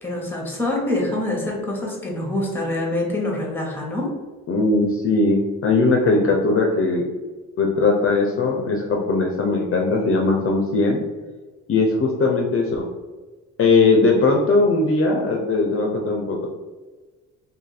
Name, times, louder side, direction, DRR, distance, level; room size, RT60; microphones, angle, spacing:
voice 1, 0.0-4.1, left 1 dB, 5° left, -1 dB, 1.0 m, -25 dB
voice 2, 4.5-7.1 7.6-11.0 11.7-12.9 13.6-16.5, left 3 dB, 45° left, 0 dB, 0.6 m, -19 dB
2.7 x 2.6 x 3.9 m, 1.3 s
cardioid pair, 90°, 30 cm